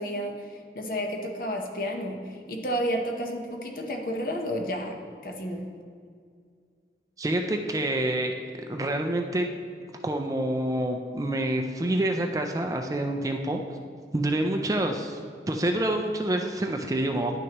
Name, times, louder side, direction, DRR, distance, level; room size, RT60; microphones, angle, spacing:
voice 1, 0.0-5.0 5.2-5.7, equal, 50° left, 3 dB, 0.9 m, -31 dB
voice 2, 7.2-8.3 8.7-9.5 10.0-13.6 14.1-15.2 15.5-17.4, right 1 dB, 20° right, 4 dB, 0.4 m, -27 dB
10.5 x 6.2 x 3.0 m, 2.1 s
head